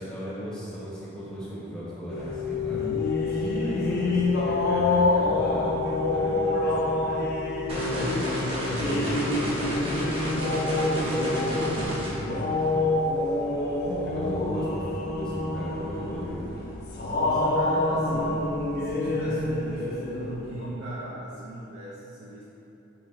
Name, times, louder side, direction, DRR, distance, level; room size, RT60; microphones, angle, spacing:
voice 1, 0.0-2.8 3.3-7.2 8.6-12.7 13.9-16.5, right 1 dB, 5° left, -9 dB, 0.8 m, -36 dB
sound 1, 2.1-20.7, left 2 dB, 50° left, 0.5 m, -27 dB
voice 2, 3.3-4.2 7.7-8.9 13.4-14.2 17.0-18.4 18.8-22.4, right 1 dB, 65° right, -7 dB, 0.5 m, -38 dB
sound 2, 7.7-12.1, equal, 25° right, 0.8 m, -31 dB
3.9 x 2.8 x 4.1 m, 3.0 s
head